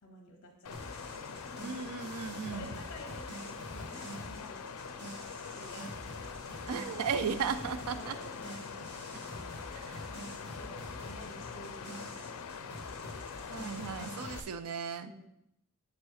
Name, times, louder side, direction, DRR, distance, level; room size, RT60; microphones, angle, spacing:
voice 1, 0.0-1.7 2.4-5.0 5.5-6.5 7.2-9.7 10.4-14.1 15.0-15.3, left 1 dB, 55° left, 0 dB, 0.9 m, -52 dB
Water, 0.6-14.4, left 6 dB, 85° left, 0.4 m, -43 dB
sound 1, 0.7-14.4, right 1 dB, 50° right, 1.4 m, -47 dB
voice 2, 1.6-2.7 6.7-8.2 9.8-10.0 13.5-15.1, right 6 dB, 85° right, 12 dB, 0.4 m, -36 dB
7.2 x 3.1 x 4.5 m, 0.82 s
head